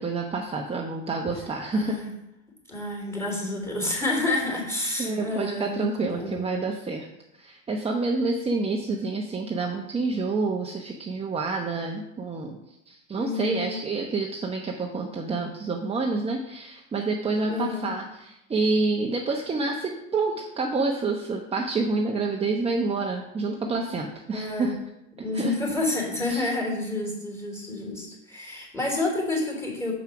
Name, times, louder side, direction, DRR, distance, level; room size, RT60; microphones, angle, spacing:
voice 1, 0.0-2.0 5.0-7.1 7.3-24.8 25.3-25.5 26.3-26.5, right 3 dB, 20° right, 1 dB, 1.0 m, -28 dB
voice 2, 1.7-2.1 2.7-6.4 8.8-9.1 13.1-13.8 17.5-17.9 24.3-24.7 25.2-29.9, left 2 dB, 10° left, 0 dB, 3.4 m, -29 dB
7.3 x 5.7 x 6.0 m, 0.86 s
supercardioid pair, 115°, 31 cm